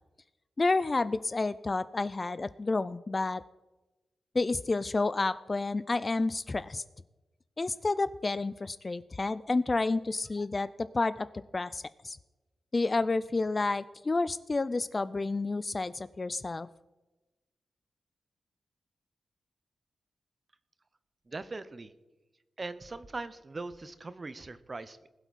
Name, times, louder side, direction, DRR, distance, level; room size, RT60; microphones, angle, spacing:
voice 1, 0.6-3.4 4.3-6.8 7.6-10.7 10.9-11.3 11.5-12.2 12.7-16.7, left 3 dB, 30° left, 16 dB, 0.3 m, -30 dB
voice 2, 21.3-21.9 22.6-25.1, right 3 dB, 30° right, 13 dB, 0.7 m, -40 dB
20.5 x 8.0 x 4.1 m, 1.1 s
wide cardioid pair, 135°, 0 cm